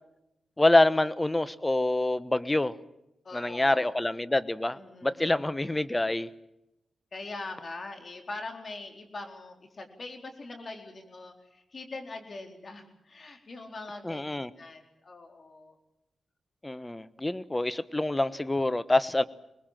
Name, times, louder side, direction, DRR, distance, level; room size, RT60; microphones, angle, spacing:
voice 1, 0.6-2.7 3.3-6.3 14.0-14.5 16.6-19.2, left 2 dB, 20° left, 16 dB, 1.2 m, -26 dB
voice 2, 3.2-3.9 4.7-5.3 7.1-15.8, left 3 dB, 55° left, 4 dB, 4.3 m, -42 dB
24.5 x 20.5 x 7.6 m, 0.87 s
supercardioid pair, 45°, 0 cm